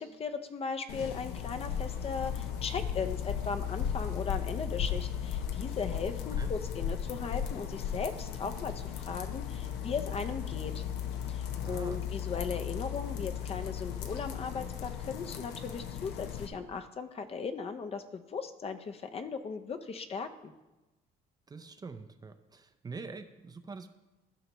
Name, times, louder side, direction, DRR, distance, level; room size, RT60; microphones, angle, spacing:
voice 1, 0.0-10.9 11.3-20.5, left 5 dB, 35° left, 7 dB, 0.6 m, -38 dB
sound 1, 0.9-16.5, left 8 dB, 85° left, 0.8 m, -36 dB
voice 2, 11.6-12.0 21.5-23.9, right 4 dB, 25° right, 8 dB, 0.5 m, -44 dB
14.5 x 5.6 x 3.1 m, 1.1 s
cardioid pair, 110°, 17 cm